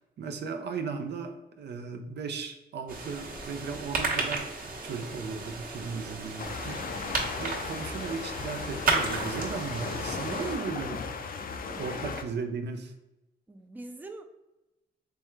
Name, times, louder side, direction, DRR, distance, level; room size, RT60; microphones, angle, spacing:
voice 1, 0.0-4.5 4.8-6.8 7.4-11.0 11.7-12.9, right 5 dB, 75° right, 6 dB, 0.5 m, -36 dB
sound 1, 2.9-10.6, right 3 dB, 50° right, 1.0 m, -34 dB
sound 2, 6.4-12.2, left 5 dB, 55° left, 0.5 m, -36 dB
voice 2, 13.5-14.2, right 2 dB, 10° right, 7 dB, 0.4 m, -44 dB
3.5 x 3.2 x 3.1 m, 0.97 s
cardioid pair, 75°, 18 cm